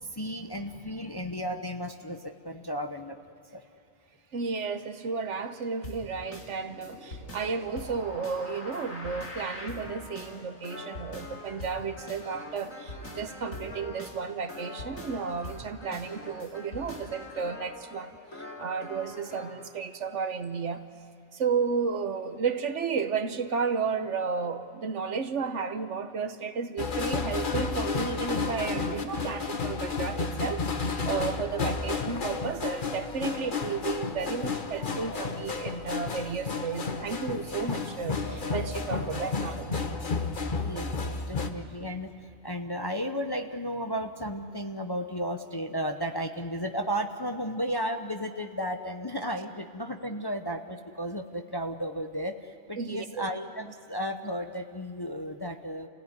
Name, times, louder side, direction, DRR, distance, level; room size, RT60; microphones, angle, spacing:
voice 1, 0.0-3.2 3.5-3.6 39.1-39.2 40.6-42.1 42.4-55.9, equal, 20° left, 5 dB, 0.7 m, -34 dB
voice 2, 4.3-20.8 21.3-39.9 52.8-53.3, right 5 dB, 65° right, 9 dB, 1.3 m, -33 dB
sound 1, 5.8-19.6, left 1 dB, 90° left, 3.1 m, -43 dB
sound 2, 26.8-41.5, left 4 dB, 40° left, 1.3 m, -32 dB
28.5 x 16.5 x 9.7 m, 2.3 s
omnidirectional pair, 1.3 m